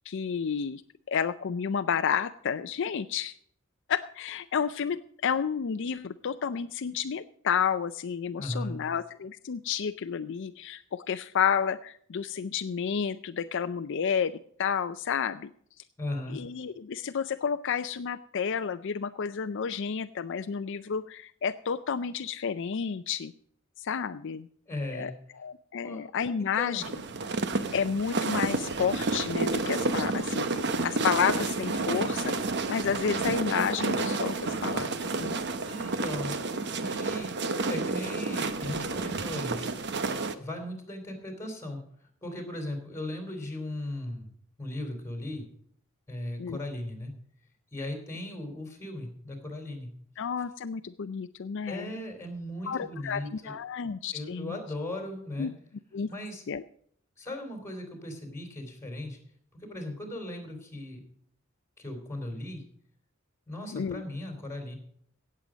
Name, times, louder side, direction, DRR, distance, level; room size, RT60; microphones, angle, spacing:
voice 1, 0.1-0.8 1.1-3.3 3.9-15.5 16.3-23.3 23.8-24.5 24.9-25.1 25.4-26.8 27.7-30.5 30.8-32.3 32.7-35.4 46.4-46.6 50.2-51.9 52.6-54.5 55.4-55.5 55.9-56.1 56.5-56.6 63.7-64.0, left 7 dB, 60° left, 11 dB, 0.5 m, -31 dB
voice 2, 8.4-8.8 16.0-16.4 24.7-25.1 25.8-26.0 26.4-26.9 35.4-37.4 37.7-39.7 40.4-44.3 44.6-45.5 46.1-47.1 47.7-49.9 51.7-53.6 54.1-55.5 56.1-56.4 57.2-59.2 59.6-61.0 61.8-62.6 63.5-64.8, left 1 dB, 15° left, 4 dB, 3.7 m, -37 dB
sound 1, 26.8-40.3, right 3 dB, 55° right, 1.0 m, -30 dB
17.0 x 7.6 x 5.1 m, 0.63 s
head